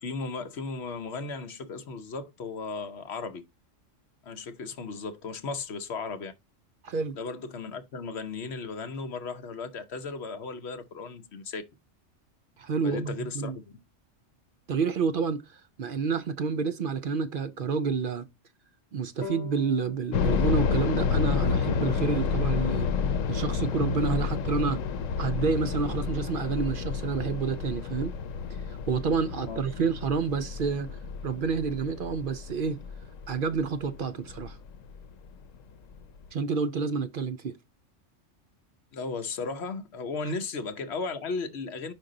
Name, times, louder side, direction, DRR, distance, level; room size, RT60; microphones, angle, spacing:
voice 1, 0.0-3.4 4.2-6.3 7.1-11.6 12.8-13.6 29.5-29.6 38.9-41.9, left 4 dB, 60° left, 1.1 m, -35 dB
voice 2, 6.8-7.2 12.6-13.6 14.7-18.3 18.9-22.9 23.3-24.8 25.2-28.1 28.7-32.8 33.3-34.6 36.3-37.5, right 5 dB, 55° right, 0.6 m, -29 dB
sound 1, 19.2-22.5, left 3 dB, 35° left, 1.6 m, -45 dB
sound 2, 20.1-35.0 35.3-35.4 36.0-36.3, left 6 dB, 90° left, 1.1 m, -30 dB
5.3 x 4.7 x 3.8 m
omnidirectional pair, 1.3 m